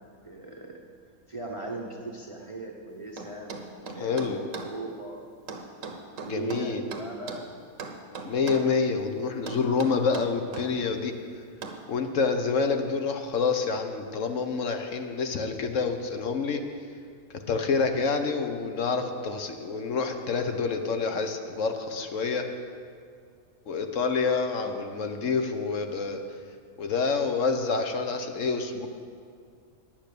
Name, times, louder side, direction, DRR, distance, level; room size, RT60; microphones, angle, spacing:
voice 1, 0.2-0.8 1.3-5.3 6.2-7.5 24.5-25.0, right 2 dB, 25° right, 0 dB, 0.8 m, -39 dB
sound 1, 3.2-4.7 5.5-7.5 7.8-8.7 9.5-10.7 11.6-11.8, right 4 dB, 65° right, 1.3 m, -38 dB
voice 2, 4.0-4.4 6.3-6.8 8.2-11.1 11.9-16.6 17.5-22.4 23.7-26.2 26.8-28.9, left 4 dB, 65° left, 6 dB, 1.1 m, -27 dB
10.0 x 8.8 x 6.8 m, 2.2 s
omnidirectional pair, 1.5 m